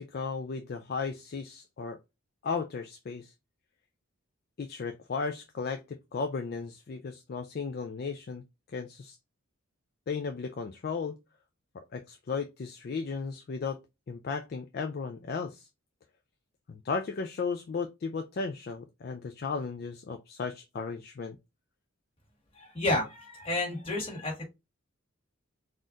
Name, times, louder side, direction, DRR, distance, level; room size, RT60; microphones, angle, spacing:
voice 1, 0.0-2.0 2.4-3.3 4.6-8.4 8.7-9.2 10.1-11.2 11.7-13.8 14.1-15.7 16.7-21.4, left 5 dB, 45° left, 0.3 m, -35 dB
voice 2, 22.5-24.5, left 2 dB, 25° left, 1.5 m, -31 dB
4.1 x 2.5 x 3.7 m
head